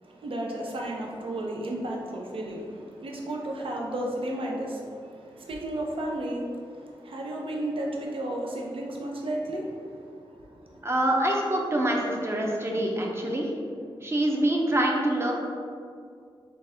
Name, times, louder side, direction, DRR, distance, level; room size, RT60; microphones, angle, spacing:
voice 1, 0.0-10.8, right 1 dB, 70° right, -1 dB, 0.7 m, -33 dB
voice 2, 10.8-13.5 14.0-15.3, right 1 dB, 25° right, -1 dB, 0.7 m, -25 dB
4.1 x 3.3 x 3.4 m, 2.3 s
wide cardioid pair, 95°, 9 cm